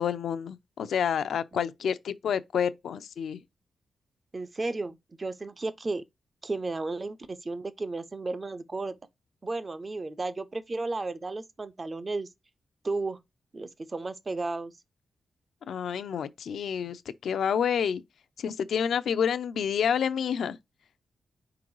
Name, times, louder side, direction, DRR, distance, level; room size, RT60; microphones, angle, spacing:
voice 1, 0.0-3.4 15.7-18.0 18.4-20.6, left 7 dB, 75° left, 0.4 m, -29 dB
voice 2, 4.3-6.0 6.4-8.9 9.4-12.3 12.8-13.2 13.5-14.7, right 3 dB, 25° right, 0.3 m, -33 dB
4.5 x 3.7 x 3.0 m
wide cardioid pair, 165°, 0 cm